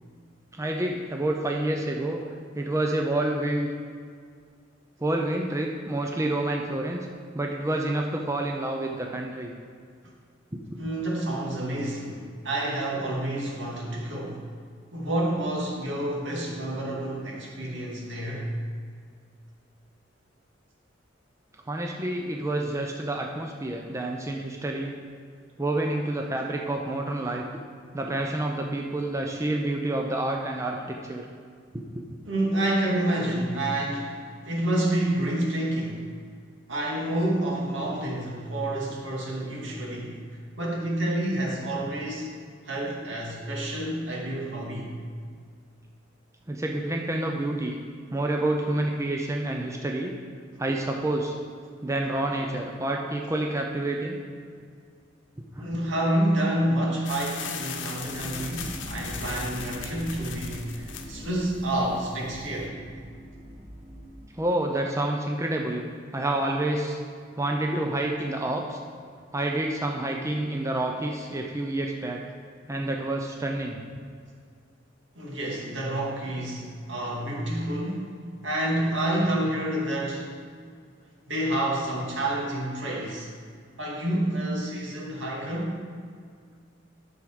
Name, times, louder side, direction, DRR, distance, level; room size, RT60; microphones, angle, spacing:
voice 1, 0.5-2.2 2.5-3.7 5.0-7.1 7.3-9.5 10.5-10.6 21.7-25.0 25.6-27.4 27.9-31.3 31.7-32.0 46.5-47.8 48.1-50.1 50.6-51.4 51.8-54.2 55.6-55.7 64.4-65.8 66.1-67.0 67.4-68.8 69.3-72.2 72.7-73.8, right 1 dB, 15° right, 1 dB, 0.6 m, -28 dB
voice 2, 10.8-14.5 14.9-18.5 32.2-36.0 36.7-40.2 40.6-42.3 42.6-44.9 55.6-62.8 75.2-78.2 78.4-80.3 81.3-83.3 83.8-85.8, right 1 dB, 75° right, -3 dB, 2.4 m, -28 dB
sound 1, 57.1-62.7, left 7 dB, 70° left, 0.9 m, -39 dB
sound 2, 58.1-64.3, equal, 40° right, 0.9 m, -42 dB
10.0 x 6.4 x 5.0 m, 2.1 s
head